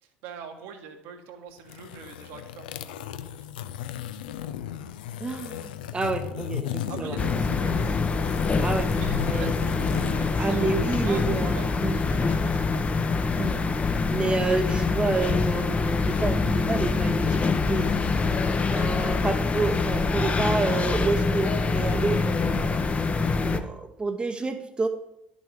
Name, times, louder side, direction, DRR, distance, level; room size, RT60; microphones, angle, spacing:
voice 1, 0.0-3.2 6.9-8.0 9.0-9.5 9.9-11.6 11.9-12.9 18.6-18.9, right 6 dB, 60° right, 5 dB, 1.2 m, -43 dB
sound 1, 1.6-11.5, left 10 dB, 70° left, 0.4 m, -35 dB
voice 2, 5.2-7.2 8.6-8.9 9.2-9.5 10.4-12.0 13.3-18.1 18.7-22.7 23.4-24.9, right 3 dB, 20° right, 6 dB, 0.8 m, -29 dB
sound 2, 7.2-23.6, left 4 dB, 25° left, 0.7 m, -25 dB
11.0 x 6.3 x 3.6 m, 0.82 s
figure-of-eight pair, 60°, 5 cm